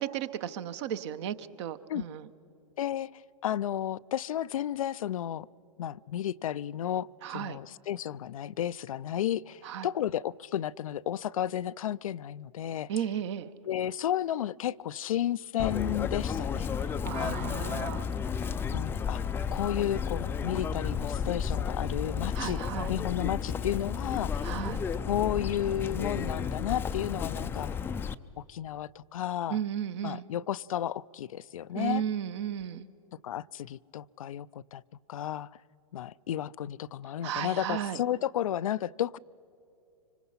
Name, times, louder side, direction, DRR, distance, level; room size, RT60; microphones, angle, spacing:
voice 1, 0.0-2.2 7.2-7.6 9.6-9.9 12.9-13.5 17.0-18.0 22.3-22.9 24.4-24.8 29.5-30.3 31.7-32.9 37.2-38.0, right 9 dB, 50° right, 13 dB, 1.0 m, -34 dB
voice 2, 2.8-5.5 5.8-12.9 13.6-16.7 17.2-17.9 18.7-22.6 22.9-24.5 25.1-27.7 28.4-29.6 30.0-32.0 33.2-34.8 35.1-35.6 35.9-39.2, left 11 dB, 70° left, 17 dB, 0.4 m, -33 dB
Chirp tweet, 15.6-28.1, left 6 dB, 10° left, 0.4 m, -32 dB
25.5 x 25.0 x 5.6 m, 2.7 s
hypercardioid pair, 120°, 18 cm